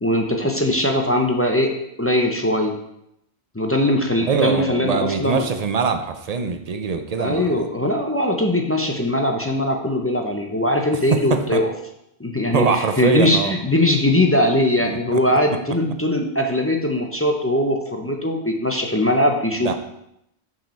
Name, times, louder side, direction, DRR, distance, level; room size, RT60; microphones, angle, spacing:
voice 1, 0.0-1.7 2.0-2.7 3.5-5.4 7.2-11.7 12.2-19.7, left 1 dB, 15° left, 2 dB, 0.5 m, -20 dB
voice 2, 4.3-7.7 10.9-11.6 12.5-13.5 14.9-15.2 19.6-19.7, right 5 dB, 45° right, 7 dB, 0.5 m, -23 dB
5.9 x 5.6 x 4.2 m, 0.80 s
omnidirectional pair, 1.1 m